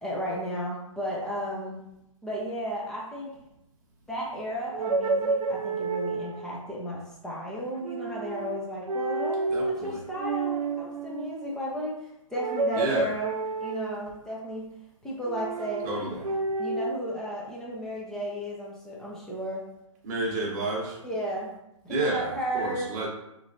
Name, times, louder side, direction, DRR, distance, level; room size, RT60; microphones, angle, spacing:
voice 1, 0.0-1.8 2.2-3.3 4.1-13.3 13.6-14.7 15.0-16.2 16.6-19.6 21.0-21.5 21.8-22.9, equal, 5° left, -5 dB, 0.6 m, -34 dB
sound 1, 4.7-6.5 7.8-8.6 8.8-9.8 10.2-11.4 12.3-14.2 15.2-16.9, right 3 dB, 85° right, 0.5 m, -30 dB
voice 2, 9.5-10.0 12.7-13.1 15.8-16.2 20.0-21.0 21.9-23.1, right 2 dB, 30° right, -2 dB, 1.1 m, -30 dB
4.4 x 3.2 x 2.6 m, 0.85 s
hypercardioid pair, 150°, 18 cm